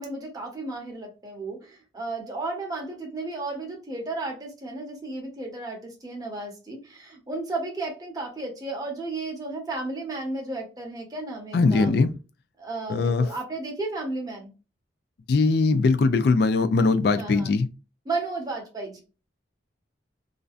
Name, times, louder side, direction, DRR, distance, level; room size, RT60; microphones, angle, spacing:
voice 1, 0.0-11.9 12.6-14.5 17.2-17.5 18.1-19.0, right 2 dB, 20° right, 0.7 m, -33 dB
voice 2, 11.5-12.1 12.9-13.3 15.3-17.7, left 3 dB, 55° left, 0.3 m, -21 dB
2.5 x 2.1 x 2.4 m
head